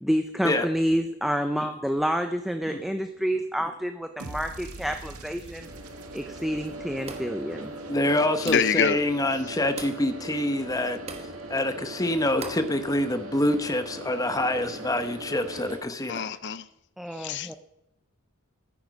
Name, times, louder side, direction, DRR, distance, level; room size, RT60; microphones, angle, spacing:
voice 1, 0.0-5.7 6.1-7.7 17.0-17.5, equal, ahead, 0.6 m, -28 dB
sound 1, 4.2-8.4, right 2 dB, 90° right, 1.8 m, -44 dB
sound 2, 5.6-15.8, right 1 dB, 70° right, 2.4 m, -40 dB
sound 3, 7.1-7.4 8.5-8.8 9.8-10.1 11.1-11.4 12.4-12.7, right 4 dB, 30° right, 1.3 m, -39 dB
voice 2, 7.9-11.0 11.5-16.3, left 1 dB, 15° left, 1.0 m, -26 dB
voice 3, 8.4-9.0 16.1-16.6 17.2-17.5, left 7 dB, 55° left, 0.6 m, -25 dB
14.0 x 9.6 x 5.3 m
head